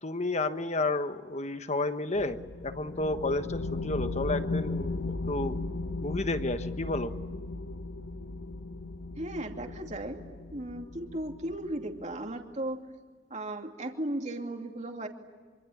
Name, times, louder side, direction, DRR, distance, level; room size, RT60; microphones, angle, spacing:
voice 1, 0.0-5.5 6.0-7.1, left 2 dB, 35° left, 9 dB, 1.4 m, -31 dB
sound 1, 2.1-12.2, left 2 dB, 90° left, 1.3 m, -36 dB
voice 2, 9.2-10.2 10.5-12.8 13.3-15.1, right 1 dB, 40° right, 3 dB, 2.7 m, -36 dB
26.0 x 25.5 x 8.6 m, 1.5 s
head